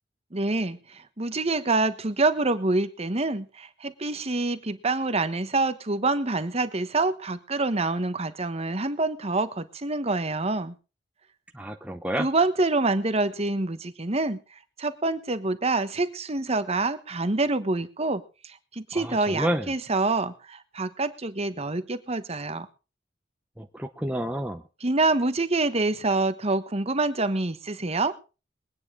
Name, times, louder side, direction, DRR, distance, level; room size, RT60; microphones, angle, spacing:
voice 1, 0.3-10.7 12.2-14.4 14.8-18.2 18.7-22.7 24.8-28.1, right 2 dB, 35° right, 11 dB, 1.2 m, -26 dB
voice 2, 11.5-12.3 18.9-19.7 23.6-24.6, right 1 dB, 5° right, 4 dB, 0.7 m, -30 dB
22.5 x 9.6 x 3.8 m, 0.32 s
head